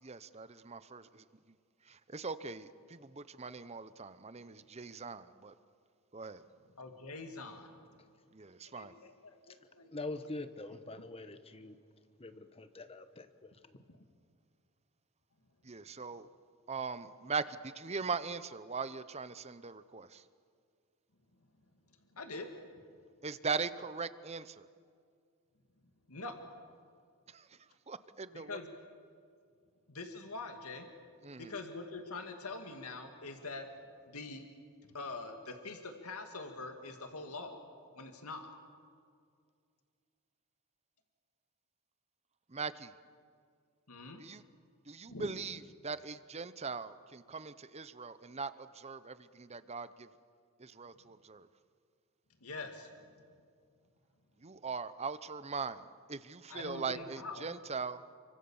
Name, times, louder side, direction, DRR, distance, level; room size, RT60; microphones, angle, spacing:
voice 1, 0.0-1.2 1.9-5.5 6.1-6.4 8.3-8.9 15.6-16.3 16.7-20.2 23.2-24.7 27.3-27.5 27.9-28.6 31.2-31.5 42.5-42.9 44.2-44.4 44.9-50.1 50.6-51.5 54.4-58.0, right 5 dB, 30° right, 0.8 m, -40 dB
voice 2, 6.8-7.7 8.8-9.9 22.1-22.5 26.1-26.4 28.3-28.7 29.9-30.9 31.4-33.7 34.1-34.4 34.9-37.6 38.0-38.5 43.9-44.2 45.1-45.3 52.4-52.9 56.5-57.5, left 3 dB, 80° left, 2.2 m, -44 dB
voice 3, 9.9-11.8 12.2-13.8, left 2 dB, 25° left, 1.2 m, -44 dB
29.5 x 24.5 x 7.2 m
head